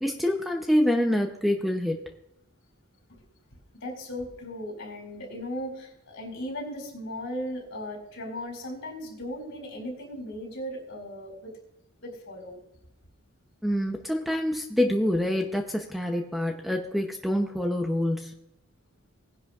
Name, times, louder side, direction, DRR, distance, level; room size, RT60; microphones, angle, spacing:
voice 1, 0.0-2.0 13.6-18.4, left 1 dB, ahead, 3 dB, 0.7 m, -26 dB
voice 2, 3.8-11.5 12.0-12.6, equal, 60° left, 1 dB, 4.5 m, -37 dB
19.0 x 10.5 x 2.4 m, 0.83 s
head